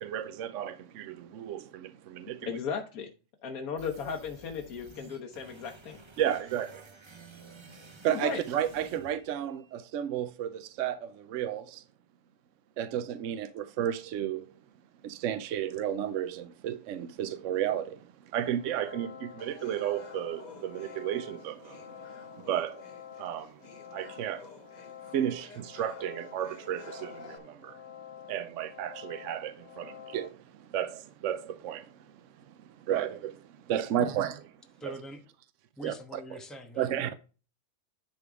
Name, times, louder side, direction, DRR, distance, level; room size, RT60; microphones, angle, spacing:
voice 1, 0.0-1.1 1.4-1.6 6.2-6.7 8.0-10.5 10.8-11.0 11.3-11.6 12.8-14.4 15.2-17.9 18.3-19.1 19.4-20.4 20.7-21.5 22.5-22.7 23.2-23.4 23.9-24.4 25.1-25.5 25.7-27.1 28.3-29.5 29.8-29.9 30.1-30.3 30.7-30.9 31.2-31.8 32.9-33.2 33.7-34.3 34.8-34.9 35.8-35.9 36.8-37.1, right 10 dB, 70° right, 0.9 m, -31 dB
voice 2, 2.5-3.1 3.4-6.0 8.1-8.4, left 6 dB, 90° left, 1.4 m, -36 dB
sound 1, 3.8-9.8, right 3 dB, 30° right, 0.6 m, -52 dB
sound 2, 18.5-30.3, left 11 dB, 60° left, 1.0 m, -49 dB
sound 3, 19.4-27.4, left 3 dB, 35° left, 1.0 m, -52 dB
voice 3, 34.8-35.2 35.8-37.1, right 1 dB, ahead, 1.0 m, -44 dB
10.5 x 3.6 x 4.8 m
omnidirectional pair, 1.5 m